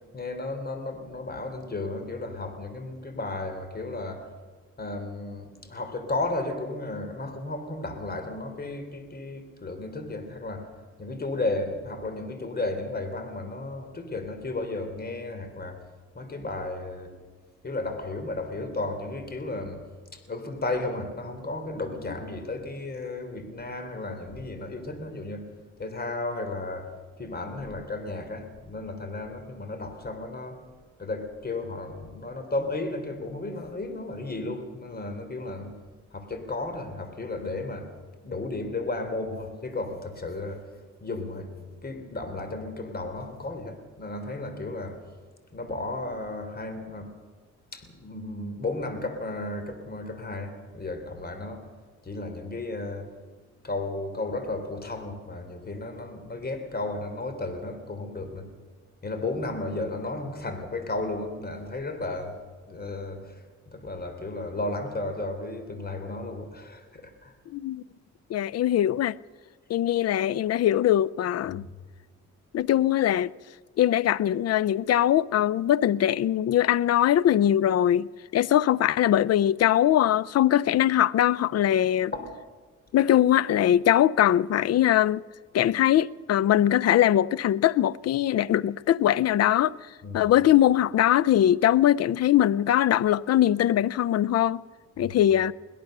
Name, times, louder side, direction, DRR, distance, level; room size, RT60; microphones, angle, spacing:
voice 1, 0.1-4.3 4.8-10.7 11.0-15.8 16.1-17.1 17.6-19.8 20.1-25.5 25.8-26.9 27.2-30.6 31.0-35.8 36.1-37.9 38.2-40.7 41.0-45.0 45.5-47.1 47.7-51.7 52.0-53.1 53.6-58.5 59.0-62.4 62.6-67.3 71.5-71.7 82.1-82.3 90.0-90.3 95.0-95.2, left 2 dB, 30° left, 3.8 m, -34 dB
voice 2, 67.5-67.8 68.3-69.2 69.7-71.6 72.5-73.3 73.8-78.1 78.3-82.1 82.9-85.2 85.5-89.8 90.1-94.6 95.0-95.5, left 11 dB, 55° left, 0.6 m, -21 dB
22.5 x 17.0 x 6.7 m
cardioid pair, 90°, 30 cm